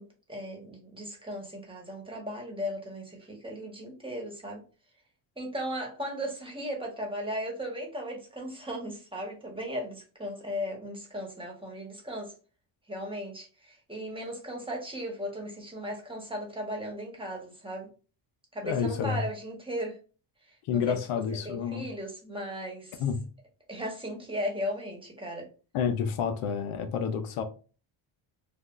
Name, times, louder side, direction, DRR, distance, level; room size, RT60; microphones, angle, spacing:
voice 1, 0.0-4.6 5.4-12.3 12.9-17.9 18.5-20.0 20.5-21.0 21.4-23.0 23.7-25.5, equal, 10° right, 1.2 m, -36 dB
voice 2, 18.6-19.2 20.7-21.9 23.0-23.2 25.7-27.4, left 7 dB, 80° left, 0.7 m, -29 dB
3.4 x 2.4 x 2.4 m
cardioid pair, 95°, 50 cm